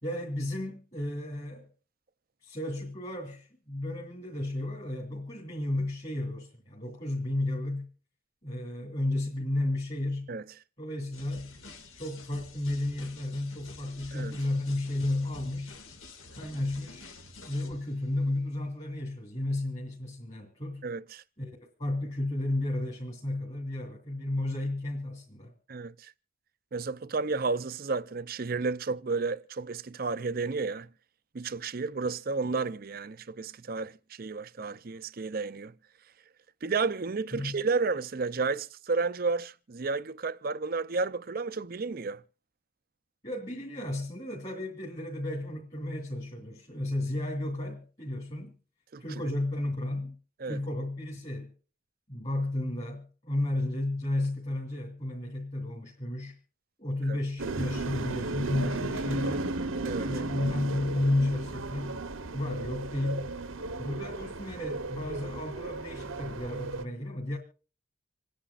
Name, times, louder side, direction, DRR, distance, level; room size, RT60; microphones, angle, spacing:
voice 1, 0.0-1.7 2.4-7.8 8.4-10.3 10.8-11.5 11.9-15.8 16.3-17.1 17.4-20.9 21.4-25.5 37.3-37.6 43.2-48.5 49.0-50.1 50.4-51.5 52.1-56.4 56.8-59.5 60.0-62.0 62.3-63.3 63.8-67.4, left 1 dB, 30° left, 2.8 m, -33 dB
sound 1, 11.1-18.0, left 3 dB, 80° left, 2.1 m, -49 dB
voice 2, 20.8-21.2 25.7-26.1 26.7-30.9 31.3-35.7 36.6-42.2 48.9-49.2 50.4-50.6 57.1-57.2 59.8-60.1, right 4 dB, 45° right, 0.5 m, -32 dB
sound 2, 57.4-66.8, right 3 dB, 80° right, 1.0 m, -35 dB
27.5 x 10.0 x 2.4 m
head